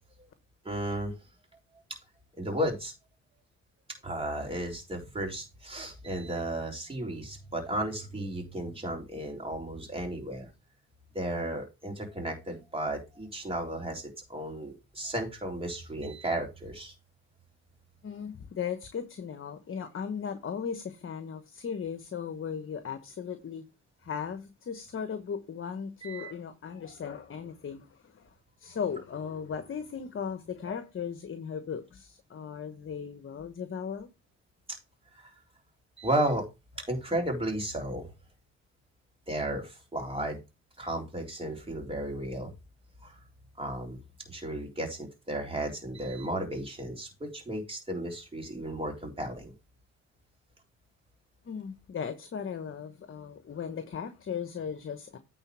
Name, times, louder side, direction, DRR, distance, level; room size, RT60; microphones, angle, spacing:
voice 1, 0.6-1.1 2.4-2.9 4.0-10.5 11.1-16.9 26.0-26.3 35.1-35.3 36.0-36.5 36.9-38.1 39.3-40.4 40.8-42.5 43.0-43.1 43.6-44.0 44.3-49.5, right 1 dB, 20° right, 3.7 m, -34 dB
voice 2, 18.0-23.6 24.0-34.1 51.4-55.2, left 7 dB, 45° left, 1.2 m, -37 dB
8.9 x 4.2 x 6.0 m
cardioid pair, 90°, 30 cm